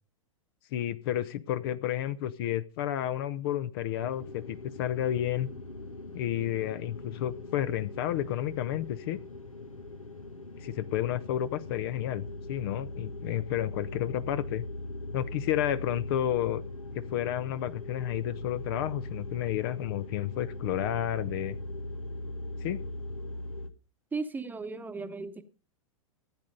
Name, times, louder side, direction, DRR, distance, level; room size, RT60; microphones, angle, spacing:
voice 1, 0.7-5.5 6.1-9.2 10.6-14.6 15.1-16.6 16.9-21.6 22.6-22.8, left 12 dB, 45° left, 0.8 m, -31 dB
sound 1, 4.0-23.7, left 2 dB, 80° left, 1.4 m, -40 dB
voice 2, 24.1-25.4, right 4 dB, 10° right, 1.1 m, -36 dB
15.0 x 8.6 x 5.3 m
figure-of-eight pair, 95°, 17 cm